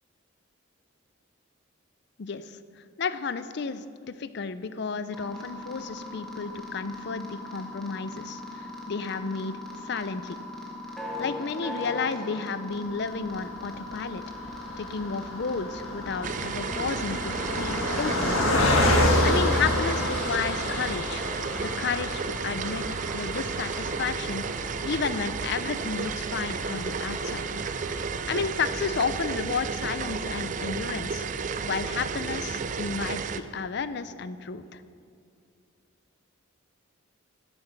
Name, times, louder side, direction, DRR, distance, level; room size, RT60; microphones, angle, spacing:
voice 1, 2.2-2.6 3.0-10.4 11.2-14.2 14.8-18.4 19.2-21.2 21.8-24.5 24.8-27.5 28.3-31.3 31.6-34.8, left 5 dB, 55° left, 13 dB, 0.5 m, -32 dB
sound 1, 5.1-20.1, left 2 dB, ahead, 1.4 m, -39 dB
Car passing by, 13.3-28.8 29.3-29.4 29.6-29.8, left 1 dB, 85° left, 1.5 m, -30 dB
sound 2, 16.2-33.4, right 5 dB, 35° right, 0.4 m, -32 dB
12.5 x 8.8 x 5.7 m, 2.3 s
head